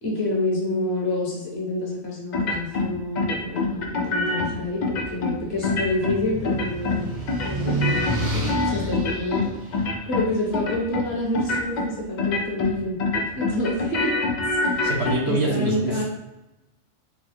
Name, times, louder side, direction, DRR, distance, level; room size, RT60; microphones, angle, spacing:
voice 1, 0.0-14.1 14.7-14.9 15.2-16.0, left 2 dB, 55° left, -3 dB, 1.1 m, -28 dB
sound 1, 2.3-2.9 3.2-4.5 4.8-5.3 5.6-6.2 6.4-7.0 7.3-9.5 9.7-10.3 10.5-11.0 11.3-11.9 12.2-12.7 13.0-15.1, left 3 dB, 75° left, 0.4 m, -25 dB
sound 2, 4.8-11.1, right 2 dB, 40° right, 0.5 m, -31 dB
voice 2, 14.8-16.0, right 2 dB, 60° right, -3 dB, 0.9 m, -25 dB
4.0 x 2.2 x 3.1 m, 0.96 s
omnidirectional pair, 1.3 m